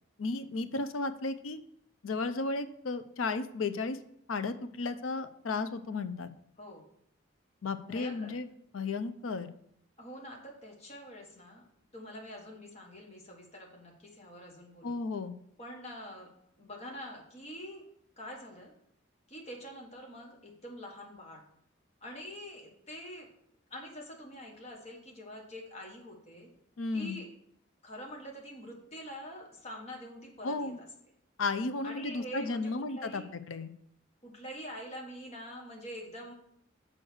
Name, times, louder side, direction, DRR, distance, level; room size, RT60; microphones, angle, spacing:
voice 1, 0.2-1.6 2.0-4.0 4.3-6.3 7.6-8.5 8.7-9.5 14.8-15.3 26.8-27.2 30.4-30.8 31.4-33.7, left 3 dB, 85° left, 11 dB, 0.6 m, -34 dB
voice 2, 7.9-8.3 10.0-11.6 11.9-15.0 15.6-16.3 16.6-17.8 18.2-18.7 19.3-21.4 22.0-23.3 23.7-26.5 26.9-27.3 27.8-30.7 31.8-33.3 34.2-36.3, equal, 35° left, 0 dB, 1.5 m, -45 dB
6.5 x 4.4 x 6.2 m, 0.72 s
head